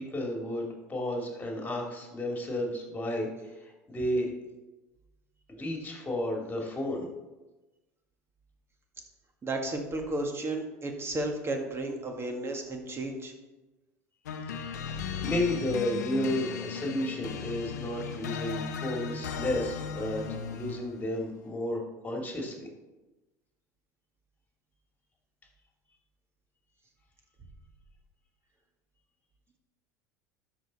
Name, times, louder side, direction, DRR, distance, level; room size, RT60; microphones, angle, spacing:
voice 1, 0.0-3.5 3.9-4.3 5.5-7.1 14.5-14.8 15.2-22.7, left 1 dB, 20° left, 0 dB, 2.7 m, -32 dB
voice 2, 9.4-13.3, right 2 dB, 30° right, 3 dB, 1.9 m, -33 dB
sound 1, 14.3-21.0, left 6 dB, 80° left, 0.7 m, -36 dB
12.5 x 5.4 x 4.2 m, 1.1 s
hypercardioid pair, 75°, 9 cm